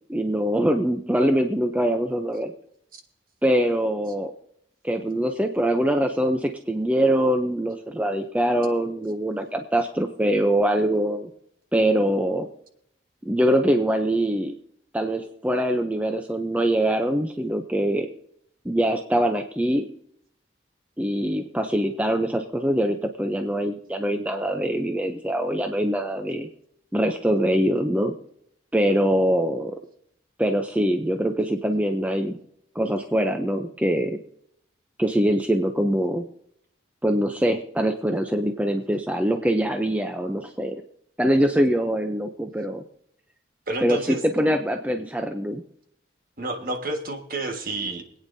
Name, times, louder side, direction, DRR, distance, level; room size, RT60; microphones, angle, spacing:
voice 1, 0.1-2.5 3.4-4.3 4.8-11.3 11.7-12.5 13.3-14.5 14.9-18.1 18.6-19.9 21.0-26.5 26.9-28.2 28.7-29.8 30.4-32.4 32.7-34.2 35.0-36.3 37.0-40.8 41.2-42.8 43.8-45.6, right 1 dB, 10° right, 5 dB, 0.5 m, -23 dB
voice 2, 43.7-44.2 46.4-48.2, right 2 dB, 50° right, 3 dB, 1.6 m, -30 dB
25.0 x 9.1 x 2.7 m, 0.71 s
head